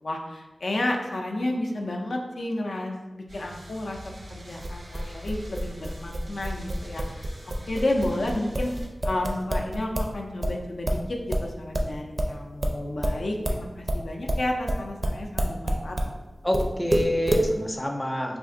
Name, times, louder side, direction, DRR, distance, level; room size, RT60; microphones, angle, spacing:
voice 1, 0.0-7.3 7.7-8.7 9.0-16.1, left 1 dB, 80° left, 1 dB, 0.4 m, -31 dB
sound 1, 3.3-8.9, equal, 85° right, 0.7 m, -44 dB
sound 2, 4.6-10.1 10.4-16.1 16.5-17.5, right 1 dB, 50° right, 0.4 m, -27 dB
voice 2, 16.4-18.4, left 1 dB, 15° left, 2 dB, 0.4 m, -27 dB
2.5 x 2.4 x 3.6 m, 1.1 s
wide cardioid pair, 50°, 0 cm